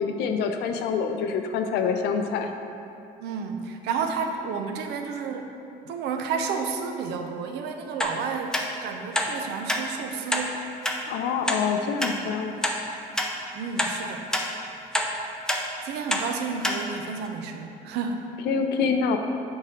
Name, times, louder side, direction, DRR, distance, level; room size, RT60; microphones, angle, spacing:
voice 1, 0.0-2.5 11.1-12.5 18.4-19.2, left 6 dB, 80° left, 5 dB, 0.6 m, -26 dB
voice 2, 3.2-5.5 5.9-10.6 13.5-14.3 15.8-18.3, right 5 dB, 80° right, 4 dB, 0.7 m, -31 dB
sound 1, 8.0-8.2 8.5-8.7 9.1-9.3 9.7-9.8 10.3-10.5 10.8-11.0 11.5-11.6 12.0-12.1 12.6-12.8 13.2-13.3 13.8-13.9 14.3-14.5 14.9-15.1 15.5-15.6 16.1-16.3 16.6-16.8 17.3-17.4, left 1 dB, 5° left, 0.6 m, -26 dB
7.8 x 3.8 x 4.4 m, 2.7 s
cardioid pair, 110°, 17 cm